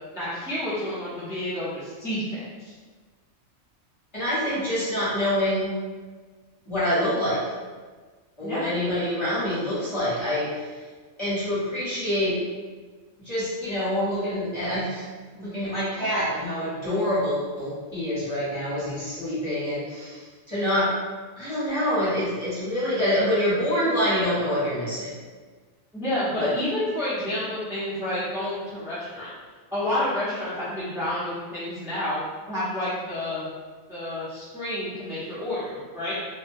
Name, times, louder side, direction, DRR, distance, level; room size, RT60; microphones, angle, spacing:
voice 1, 0.1-2.7 8.4-8.7 25.9-29.3 29.7-32.2 32.5-33.5 33.9-36.1, left 1 dB, 5° right, -12 dB, 0.4 m, -29 dB
voice 2, 4.1-5.7 6.7-7.5 8.4-10.8 11.2-12.4 13.2-15.1 15.3-21.0 21.4-25.1 26.3-26.5, equal, 25° left, -11 dB, 0.8 m, -26 dB
2.3 x 2.2 x 2.6 m, 1.4 s
omnidirectional pair, 1.4 m